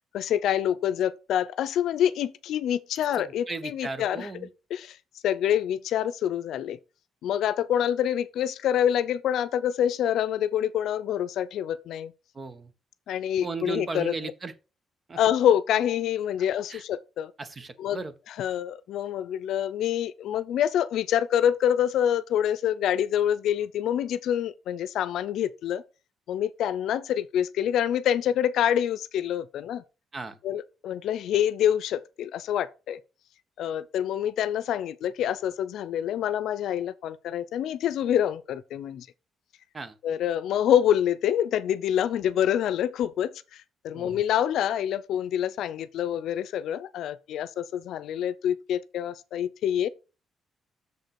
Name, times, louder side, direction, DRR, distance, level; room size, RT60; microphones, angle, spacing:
voice 1, 0.1-4.3 4.7-5.0 5.2-6.8 7.2-12.1 13.1-14.1 15.2-17.3 17.8-25.8 26.3-29.8 30.4-33.0 33.6-39.1 40.0-49.9, left 10 dB, 80° left, 0.6 m, -26 dB
voice 2, 3.2-4.5 12.3-12.7 13.4-14.5 15.1-15.2 16.7-16.8 17.4-18.1 30.1-30.4 39.7-40.0 43.9-44.2, right 4 dB, 35° right, 1.2 m, -36 dB
6.7 x 5.3 x 5.9 m
cardioid pair, 90°, 0 cm